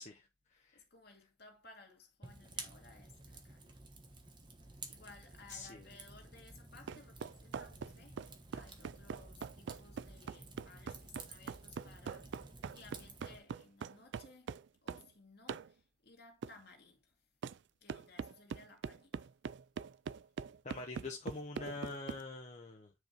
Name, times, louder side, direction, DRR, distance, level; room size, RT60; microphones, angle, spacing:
voice 1, 0.0-0.8 5.5-5.8 20.6-22.9, left 3 dB, 35° left, 1.0 m, -45 dB
voice 2, 0.5-3.8 4.9-14.5 14.8-17.1 17.8-19.3, left 3 dB, 55° left, 2.4 m, -60 dB
Fire, 2.2-13.4, right 3 dB, 25° right, 1.3 m, -52 dB
sound 1, 6.9-15.1 15.5-15.7 16.4-16.6 17.4-17.6 17.9-22.2, right 6 dB, 60° right, 0.3 m, -43 dB
9.4 x 5.2 x 3.0 m
head